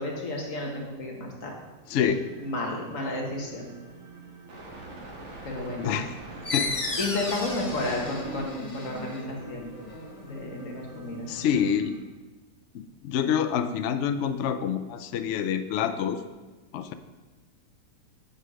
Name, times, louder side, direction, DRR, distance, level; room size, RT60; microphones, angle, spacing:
voice 1, 0.0-1.5 2.4-3.7 5.4-5.9 7.0-9.7 10.2-11.5, left 2 dB, 50° left, -1 dB, 1.8 m, -32 dB
voice 2, 1.9-2.2 5.8-6.1 6.5-6.7 11.3-12.0 12.7-16.2 16.7-16.9, left 8 dB, 85° left, 10 dB, 0.6 m, -27 dB
sound 1, 1.9-12.0, right 2 dB, 45° right, 1.5 m, -45 dB
sound 2, 6.4-11.7, left 3 dB, 35° left, 0.5 m, -35 dB
8.4 x 4.8 x 6.2 m, 1.2 s
omnidirectional pair, 1.8 m